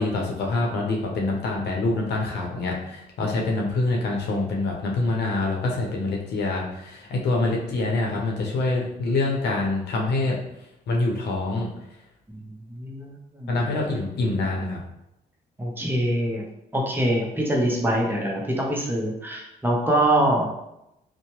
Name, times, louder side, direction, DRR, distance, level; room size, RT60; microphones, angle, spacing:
voice 1, 0.0-10.4 10.9-11.7 13.5-14.8, left 2 dB, 80° left, 0 dB, 0.7 m, -25 dB
voice 2, 12.7-13.6 15.6-16.4 16.7-20.5, right 1 dB, 10° right, -2 dB, 0.6 m, -24 dB
2.8 x 2.1 x 2.9 m, 0.84 s
cardioid pair, 90°, 17 cm